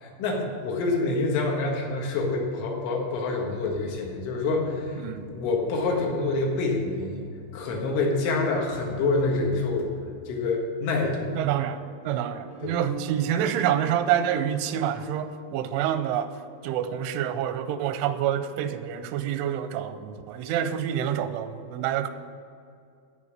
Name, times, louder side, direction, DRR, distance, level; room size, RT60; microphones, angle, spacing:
voice 1, 0.0-5.0 5.4-7.2 7.5-9.9 10.3-11.3 12.6-12.8, left 3 dB, 85° left, 0 dB, 4.1 m, -26 dB
sound 1, 3.7-10.4, left 1 dB, 65° left, 3.2 m, -46 dB
voice 2, 11.4-16.3 16.6-22.1, right 10 dB, 90° right, 11 dB, 3.1 m, -27 dB
sound 2, 12.5-17.4, right 4 dB, 55° right, 0.8 m, -43 dB
14.5 x 5.2 x 8.6 m, 2.3 s
omnidirectional pair, 5.4 m